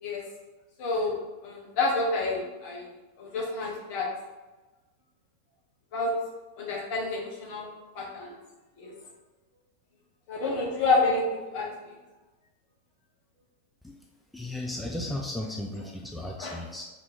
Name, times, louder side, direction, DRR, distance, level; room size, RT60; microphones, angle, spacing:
voice 1, 0.8-2.9 3.2-4.1 5.9-6.1 6.6-7.7 7.9-8.3 8.8-8.9 10.3-11.9 16.4-16.6, left 3 dB, 45° left, -2 dB, 1.1 m, -29 dB
voice 2, 14.3-16.8, left 1 dB, 5° left, 0 dB, 0.3 m, -35 dB
3.5 x 2.9 x 3.8 m, 1.2 s
figure-of-eight pair, 90°, 0 cm